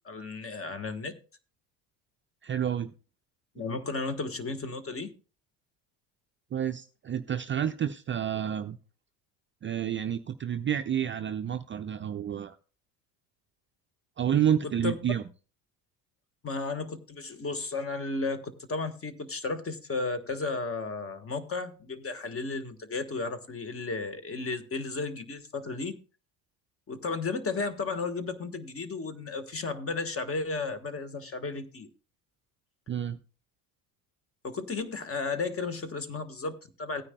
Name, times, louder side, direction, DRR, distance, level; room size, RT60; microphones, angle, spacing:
voice 1, 0.0-1.2 3.5-5.1 14.8-14.9 16.4-25.9 26.9-31.9 34.4-37.0, left 3 dB, 30° left, 1.4 m, -34 dB
voice 2, 2.4-2.9 6.5-8.8 9.6-12.6 14.2-15.2 32.9-33.2, right 9 dB, 25° right, 0.5 m, -29 dB
16.5 x 9.6 x 2.2 m
hypercardioid pair, 70°, 47 cm